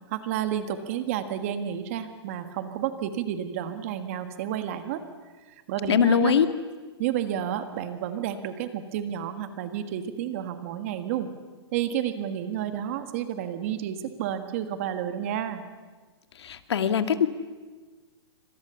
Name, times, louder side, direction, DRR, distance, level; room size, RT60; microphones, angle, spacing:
voice 1, 0.1-5.0 5.7-6.4 7.0-11.3 11.7-15.6, right 10 dB, 30° right, 9 dB, 1.7 m, -30 dB
voice 2, 5.9-6.5 16.4-17.3, left 8 dB, 70° left, 9 dB, 2.1 m, -22 dB
27.5 x 25.5 x 7.1 m, 1.4 s
hypercardioid pair, 175°, 14 cm